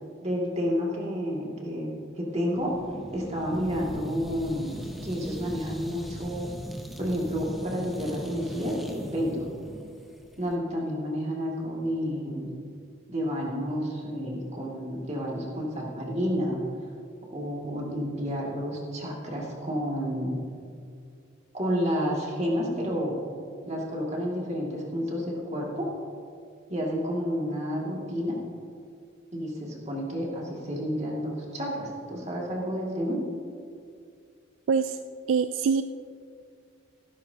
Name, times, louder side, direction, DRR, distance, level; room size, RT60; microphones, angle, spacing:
voice 1, 0.2-1.9 2.1-2.7 3.1-4.7 5.0-6.5 7.0-9.5 10.4-12.5 13.1-16.6 17.3-20.3 21.5-23.1 23.6-25.9 26.7-28.4 29.3-33.2, equal, 30° right, -3 dB, 2.2 m, -30 dB
sound 1, 2.5-10.5, equal, ahead, 0.7 m, -40 dB
voice 2, 34.7-35.0 35.3-35.8, right 6 dB, 70° right, 10 dB, 0.3 m, -24 dB
15.0 x 13.0 x 2.8 m, 2.3 s
head